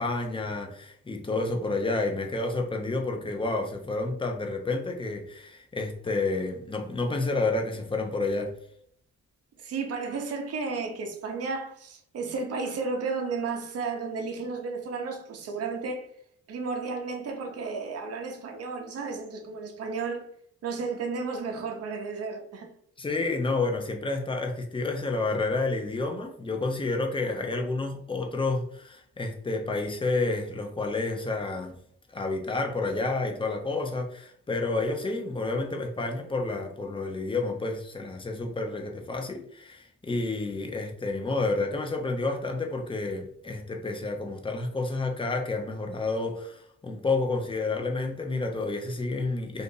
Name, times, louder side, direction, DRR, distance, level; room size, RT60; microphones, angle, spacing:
voice 1, 0.0-8.5 23.0-31.8 32.1-49.6, left 3 dB, 15° left, 0.6 m, -30 dB
voice 2, 9.6-16.1 16.5-20.3 20.6-22.7, right 4 dB, 55° right, 0.8 m, -33 dB
2.6 x 2.5 x 3.7 m
cardioid pair, 90°, 30 cm